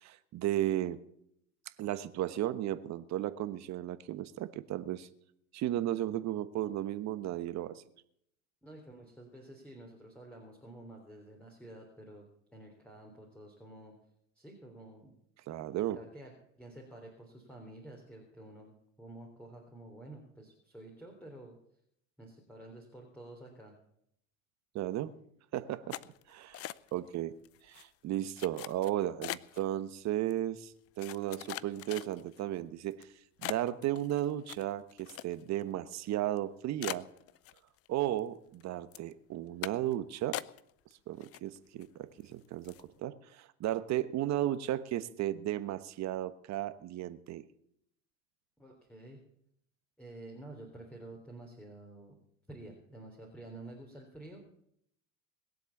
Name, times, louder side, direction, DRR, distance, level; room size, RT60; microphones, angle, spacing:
voice 1, 0.0-1.0 1.8-5.1 5.5-7.8 15.5-16.0 24.7-25.1 25.5-26.0 26.3-27.3 27.6-30.7 31.0-33.1 33.4-37.1 37.9-40.4 41.1-47.4, right 13 dB, 45° right, 13 dB, 1.2 m, -34 dB
voice 2, 8.6-14.0 14.4-15.1 15.8-18.7 19.0-21.6 22.2-23.8 48.6-49.2 50.0-52.1 52.5-54.5, right 1 dB, 5° left, 0 dB, 3.5 m, -50 dB
sound 1, 25.9-27.1 27.4-27.8 28.4-29.6 30.3-30.4 31.0-32.4 32.9-33.0 33.4-35.6 35.9-36.0 36.4-36.5 36.8-37.9 38.2-38.6 38.9-39.1 39.6-39.9 40.3-40.9 41.2-41.8 42.2-42.3 42.6-42.9, left 14 dB, 40° left, 0.6 m, -41 dB
21.0 x 7.9 x 7.2 m, 0.72 s
hypercardioid pair, 95°, 37 cm